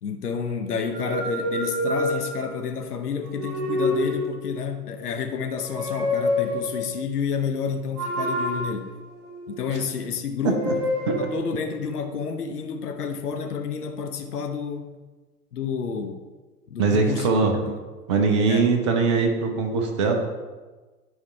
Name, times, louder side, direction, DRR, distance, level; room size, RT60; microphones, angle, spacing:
voice 1, 0.0-8.9 9.5-10.8 11.2-14.9 15.5-16.2 16.7-17.3 17.5-17.8 18.5-18.7, left 6 dB, 70° left, 6 dB, 0.9 m, -30 dB
sound 1, 0.9-2.6 3.3-4.6 5.5-6.9 8.0-9.8 10.4-11.4, left 1 dB, 40° right, 1.7 m, -27 dB
voice 2, 16.8-17.5 18.1-20.2, right 4 dB, 20° right, 3 dB, 0.5 m, -21 dB
9.6 x 4.8 x 3.2 m, 1.3 s
figure-of-eight pair, 110°, 48 cm